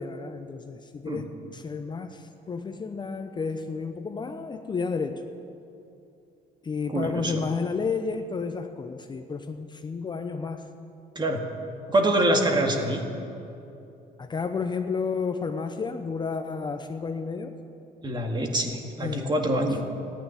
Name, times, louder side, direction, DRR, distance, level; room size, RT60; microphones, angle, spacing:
voice 1, 0.0-5.2 6.6-10.7 12.6-12.8 14.2-17.5 19.0-19.3, left 5 dB, 25° left, 7 dB, 0.7 m, -31 dB
voice 2, 6.9-7.3 11.2-11.4 11.9-13.0 18.0-19.8, right 1 dB, 25° right, 3 dB, 2.0 m, -25 dB
14.0 x 9.7 x 9.8 m, 2.8 s
cardioid pair, 110°, 17 cm